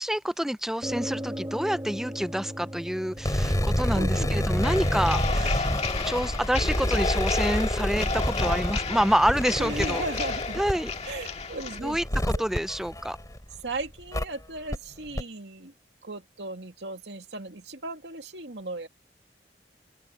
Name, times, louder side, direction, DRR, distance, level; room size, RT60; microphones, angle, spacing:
voice 1, 0.0-5.6 6.0-10.0 10.6-10.9 11.8-13.2, equal, 5° right, 0.5 m, -27 dB
sound 1, 0.8-9.9, equal, 20° right, 2.1 m, -41 dB
sound 2, 3.2-13.6 14.1-14.2 14.7-14.8 15.1-15.2, equal, 20° left, 3.7 m, -28 dB
voice 2, 3.4-4.7 5.3-5.7 9.6-10.6 11.0-12.0 12.3-12.4 13.6-15.7 16.0-18.9, right 2 dB, 80° right, 2.5 m, -37 dB
sound 3, 4.6-11.8, left 4 dB, 40° left, 2.1 m, -32 dB
open air
head